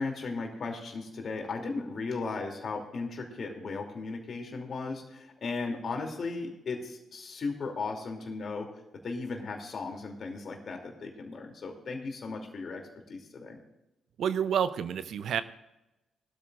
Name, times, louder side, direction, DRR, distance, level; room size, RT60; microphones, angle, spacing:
voice 1, 0.0-8.7 9.0-13.6, left 3 dB, 50° left, 2 dB, 2.7 m, -36 dB
voice 2, 14.2-15.4, right 8 dB, 65° right, 14 dB, 0.6 m, -29 dB
20.5 x 12.5 x 2.5 m, 0.95 s
hypercardioid pair, 40°, 0 cm